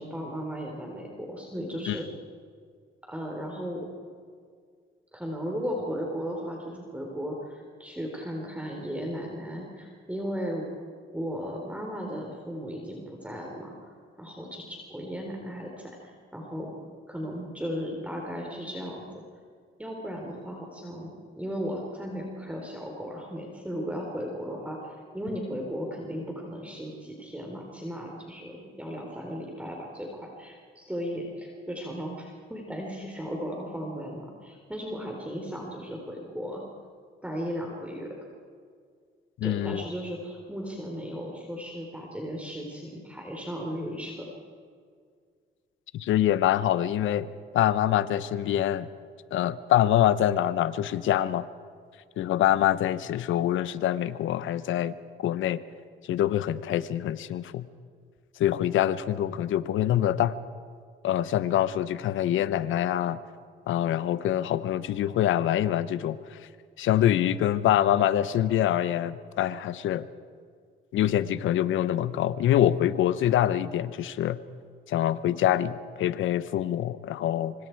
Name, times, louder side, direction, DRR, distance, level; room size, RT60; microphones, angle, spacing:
voice 1, 0.0-2.1 3.1-3.9 5.1-10.7 11.1-16.7 17.1-19.0 19.8-36.6 37.2-38.1 39.4-44.3, equal, 5° right, 0 dB, 3.9 m, -36 dB
voice 2, 39.4-39.8 45.9-47.3 47.5-48.9 49.3-51.5 52.2-55.6 56.0-57.7 58.4-60.4 61.0-63.2 63.7-66.5 66.8-70.1 70.9-74.4 74.9-77.5, left 11 dB, 80° left, 15 dB, 0.9 m, -25 dB
25.5 x 25.0 x 4.7 m, 2.1 s
cardioid pair, 90°, 20 cm